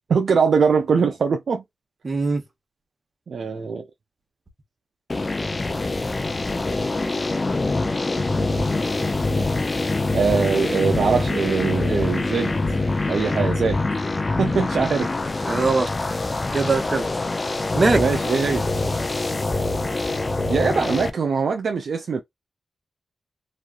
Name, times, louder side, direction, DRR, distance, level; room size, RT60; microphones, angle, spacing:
voice 1, 0.1-1.6 3.3-3.8 10.1-12.6 13.1-13.8 14.4-15.1 18.0-18.6 20.5-22.2, right 5 dB, 80° right, 0.4 m, -22 dB
voice 2, 2.0-2.4 15.4-15.9 16.5-17.1 17.7-18.0, right 3 dB, 50° right, 1.0 m, -21 dB
sound 1, 5.1-21.1, left 2 dB, 40° left, 0.6 m, -24 dB
3.1 x 2.3 x 2.4 m
cardioid pair, 50°, 0 cm